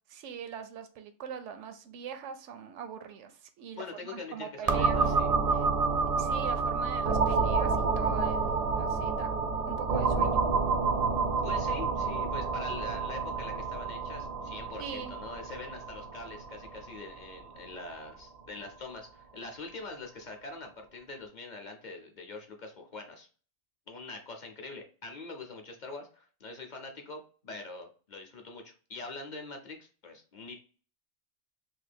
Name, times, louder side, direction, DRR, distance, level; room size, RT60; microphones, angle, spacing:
voice 1, 0.1-5.1 5.5-5.7 6.2-9.3 9.7-10.4 14.8-15.1, right 7 dB, 90° right, 9 dB, 0.9 m, -42 dB
voice 2, 3.7-5.3 11.4-23.3 23.9-30.5, left 3 dB, 50° left, 3 dB, 0.7 m, -44 dB
sound 1, 4.7-18.2, right 4 dB, 50° right, 0.4 m, -29 dB
2.9 x 2.6 x 4.2 m, 0.39 s
omnidirectional pair, 1.2 m